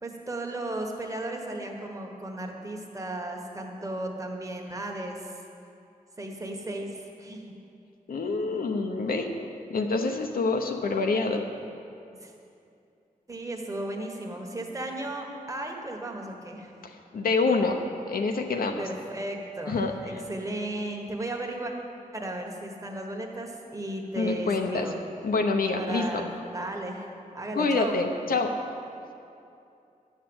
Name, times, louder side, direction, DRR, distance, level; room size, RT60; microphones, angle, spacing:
voice 1, 0.0-5.3 6.2-7.5 12.2-12.3 13.3-16.7 18.8-21.7 22.1-25.0 25.8-27.9, right 1 dB, 20° right, 1 dB, 1.3 m, -35 dB
voice 2, 8.1-9.3 9.7-11.5 16.8-17.8 18.1-18.8 19.7-20.2 24.2-24.9 25.2-26.3 27.5-28.5, left 3 dB, 80° left, 3 dB, 0.9 m, -26 dB
11.5 x 6.6 x 7.8 m, 2.6 s
wide cardioid pair, 135°, 15 cm